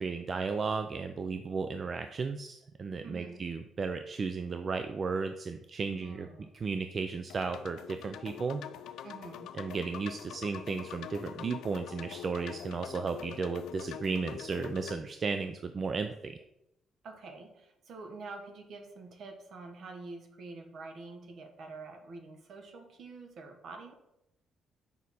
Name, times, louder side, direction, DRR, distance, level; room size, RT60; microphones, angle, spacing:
voice 1, 0.0-6.3 6.5-8.6 9.5-16.4, right 4 dB, 35° right, 8 dB, 0.4 m, -34 dB
voice 2, 3.0-3.5 6.0-6.5 9.0-9.5 17.0-23.9, right 3 dB, 60° right, 5 dB, 1.2 m, -47 dB
sound 1, 7.3-15.0, left 10 dB, 85° left, 0.3 m, -44 dB
6.4 x 5.2 x 4.2 m, 0.85 s
cardioid pair, 140°, 0 cm